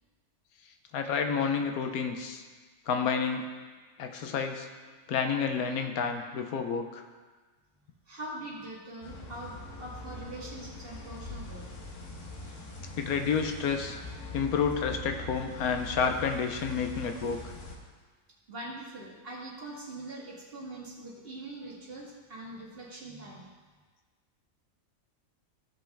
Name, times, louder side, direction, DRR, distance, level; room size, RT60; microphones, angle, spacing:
voice 1, 0.9-2.4 2.9-3.5 4.0-4.7 5.1-7.0 13.0-14.0 14.3-17.5, left 6 dB, 85° left, 6 dB, 1.2 m, -30 dB
voice 2, 8.1-11.7 18.5-23.5, right 1 dB, 40° right, -4 dB, 1.8 m, -43 dB
sound 1, 9.0-17.8, left 1 dB, 60° left, 1.5 m, -42 dB
15.0 x 5.3 x 3.4 m, 1.4 s
omnidirectional pair, 1.5 m